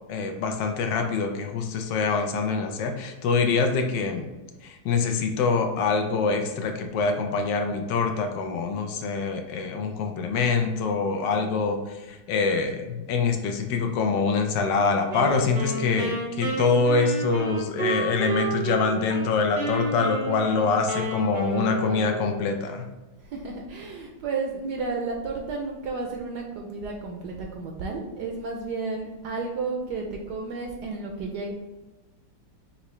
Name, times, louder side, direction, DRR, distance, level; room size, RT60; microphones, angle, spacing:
voice 1, 0.1-4.3 4.6-22.9, left 4 dB, 70° left, 4 dB, 1.2 m, -25 dB
Wind instrument woodwind instrument, 15.1-19.3 19.5-22.5, right 3 dB, 55° right, 0.5 m, -30 dB
voice 2, 23.2-31.5, right 4 dB, 70° right, 1 dB, 1.0 m, -32 dB
5.7 x 2.7 x 3.0 m, 1.1 s
omnidirectional pair, 2.2 m